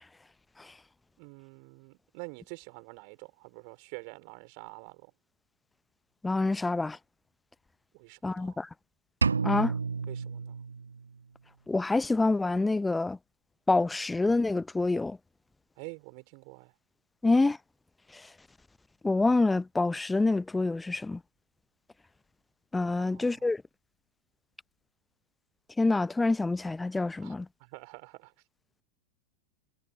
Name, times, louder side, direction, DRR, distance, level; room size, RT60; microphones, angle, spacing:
voice 1, 1.2-5.1 7.9-8.6 10.1-10.6 15.8-16.7 23.0-23.5 27.2-27.3 27.6-28.3, right 40 dB or more, 45° right, 4.7 m, -47 dB
voice 2, 6.2-7.0 8.2-8.7 9.4-9.7 11.7-13.2 13.7-15.2 17.2-17.6 19.0-21.2 22.7-23.6 25.8-27.5, left 3 dB, 10° left, 0.8 m, -26 dB
sound 1, 9.2-11.2, right 5 dB, 75° right, 1.7 m, -30 dB
figure-of-eight pair, 90°, 0 cm